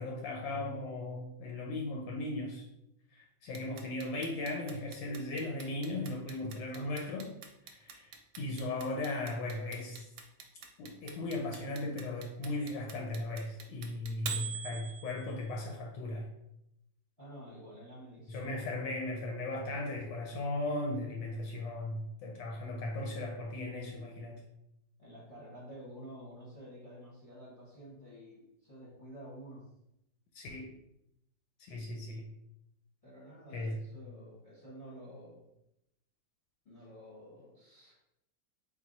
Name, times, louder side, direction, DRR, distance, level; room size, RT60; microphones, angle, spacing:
voice 1, 0.0-2.6 3.1-7.3 7.7-10.0 10.8-16.3 18.3-24.4 30.3-30.7 31.6-32.3 33.5-33.8, left 2 dB, 80° left, 0 dB, 1.3 m, -37 dB
Clock, 3.5-15.5, right 7 dB, 70° right, 1.1 m, -43 dB
voice 2, 17.2-18.6 25.0-29.6 33.0-35.4 36.6-37.9, equal, 25° left, -7 dB, 1.1 m, -50 dB
3.8 x 2.5 x 3.9 m, 0.83 s
omnidirectional pair, 2.0 m